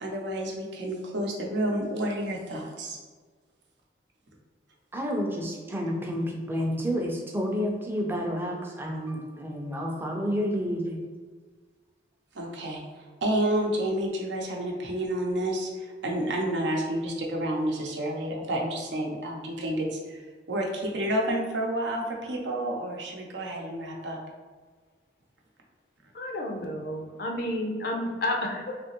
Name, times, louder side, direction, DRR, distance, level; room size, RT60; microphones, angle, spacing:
voice 1, 0.0-3.0 12.3-20.2 20.5-24.2, right 1 dB, 75° right, -1 dB, 0.7 m, -30 dB
voice 2, 4.9-11.0, equal, 10° right, 0 dB, 0.5 m, -30 dB
voice 3, 26.1-28.8, left 1 dB, 55° left, 2 dB, 0.5 m, -31 dB
3.3 x 2.8 x 2.9 m, 1.4 s
head